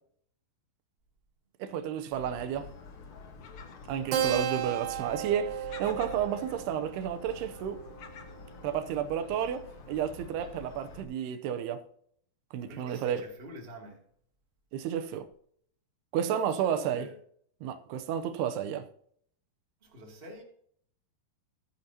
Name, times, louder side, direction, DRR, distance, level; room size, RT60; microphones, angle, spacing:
voice 1, 1.6-2.7 3.9-7.8 8.6-11.8 12.5-13.2 14.7-15.3 16.1-17.1 17.6-18.9, right 9 dB, 90° right, 2.9 m, -32 dB
Gull seagull, 2.1-11.0, left 4 dB, 85° left, 1.2 m, -48 dB
Keyboard (musical), 4.1-9.1, right 9 dB, 70° right, 2.7 m, -35 dB
voice 2, 12.6-14.0 16.2-17.1 19.8-20.4, equal, 20° right, 2.0 m, -47 dB
13.5 x 9.5 x 2.8 m
omnidirectional pair, 4.5 m